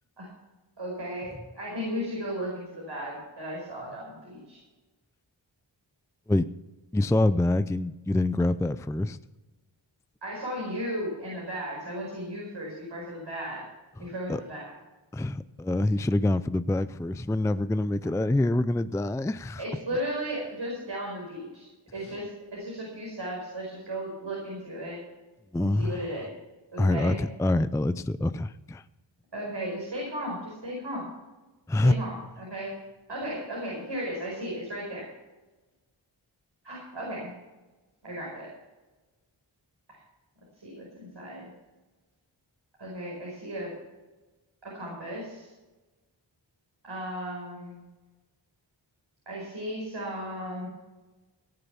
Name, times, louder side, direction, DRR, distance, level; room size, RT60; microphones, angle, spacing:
voice 1, 0.8-4.6 10.2-13.6 14.0-14.7 18.0-18.1 19.6-25.0 25.6-26.3 26.7-27.2 29.3-31.1 31.8-32.7 33.1-35.1 36.6-37.3 38.0-38.5 39.9-40.0 40.6-41.5 42.8-43.7 44.6-45.5 46.8-47.8 49.3-50.7, equal, 65° right, -3 dB, 5.2 m, -35 dB
voice 2, 6.9-9.2 14.0-14.4 15.1-19.6 25.5-26.1 26.8-28.8 31.7-32.0, left 2 dB, 5° left, 13 dB, 0.4 m, -26 dB
18.0 x 6.8 x 7.0 m, 1.2 s
wide cardioid pair, 55°, 46 cm